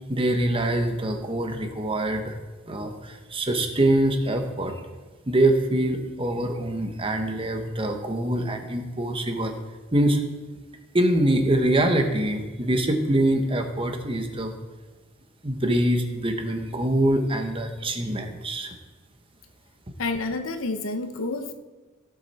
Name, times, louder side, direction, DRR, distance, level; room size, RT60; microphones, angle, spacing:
voice 1, 0.1-2.4 2.7-4.8 5.3-9.5 9.9-10.2 10.9-14.5 15.4-18.7, right 1 dB, 25° right, 5 dB, 1.1 m, -24 dB
voice 2, 20.0-21.5, left 3 dB, 80° left, 7 dB, 1.0 m, -29 dB
16.0 x 7.6 x 4.3 m, 1.2 s
head